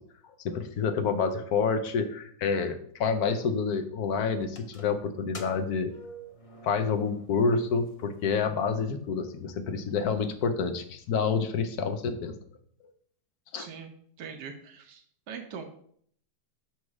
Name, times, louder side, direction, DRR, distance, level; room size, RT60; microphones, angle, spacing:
voice 1, 0.4-5.9 6.6-12.3 13.5-13.7, left 5 dB, 70° left, 8 dB, 1.2 m, -28 dB
sound 1, 4.4-7.6 7.9-8.0 8.8-8.9 9.3-9.4 9.6-10.2, equal, 35° left, 0.6 m, -47 dB
voice 2, 13.5-13.9 14.2-15.7, right 6 dB, 90° right, 4 dB, 1.3 m, -42 dB
6.3 x 4.2 x 4.8 m, 0.62 s
omnidirectional pair, 1.7 m